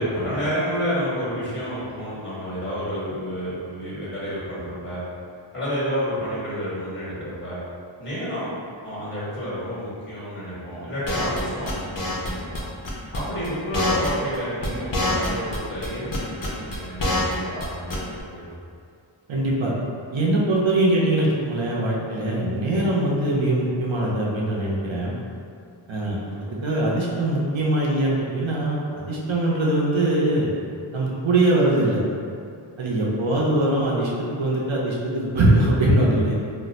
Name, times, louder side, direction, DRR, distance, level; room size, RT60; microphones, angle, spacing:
voice 1, 0.0-5.0 5.5-7.6 8.0-8.5 8.8-12.6 13.1-18.4 26.2-26.6, equal, 25° left, -9 dB, 1.3 m, -30 dB
sound 1, 11.1-11.4 11.7-12.3 12.5-12.6 12.8-13.5 13.7-14.4 14.6-15.6 15.8-17.3 17.6-17.7 17.9-18.2, left 1 dB, 45° left, 0.6 m, -25 dB
voice 2, 19.3-19.7 20.1-25.2 25.9-26.2 26.6-30.5 30.9-32.0 32.8-34.1 34.4-36.3, right 1 dB, 70° right, -4 dB, 0.7 m, -22 dB
2.5 x 2.2 x 4.0 m, 2.4 s
wide cardioid pair, 70°, 48 cm